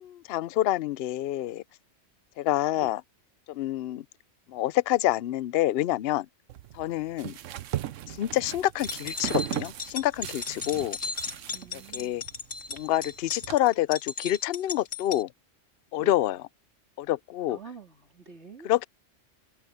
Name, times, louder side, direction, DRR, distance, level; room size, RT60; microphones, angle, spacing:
voice 1, 0.0-1.6 2.4-3.0 3.5-4.0 4.5-6.3 6.7-7.3 8.1-11.0 11.7-12.2 12.7-15.3 15.9-16.5 17.0-17.6 18.6-18.9, left 14 dB, 60° left, 0.7 m, -27 dB
sound 1, 6.5-13.6, right 12 dB, 80° right, 1.0 m, -37 dB
sound 2, 8.7-15.2, left 4 dB, 80° left, 2.4 m, -36 dB
voice 2, 11.5-12.3 16.0-16.1 17.5-18.7, right 4 dB, 60° right, 3.8 m, -46 dB
omnidirectional pair, 1.3 m